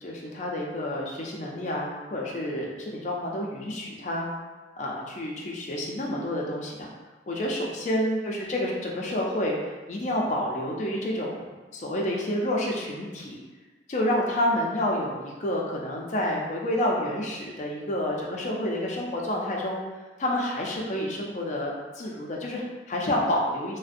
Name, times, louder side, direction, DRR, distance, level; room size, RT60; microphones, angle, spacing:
voice 1, 0.0-4.3 4.8-6.9 7.3-11.3 11.7-13.4 13.9-19.8 20.2-23.8, left 1 dB, 40° left, -2 dB, 0.4 m, -29 dB
2.4 x 2.1 x 2.5 m, 1.2 s
head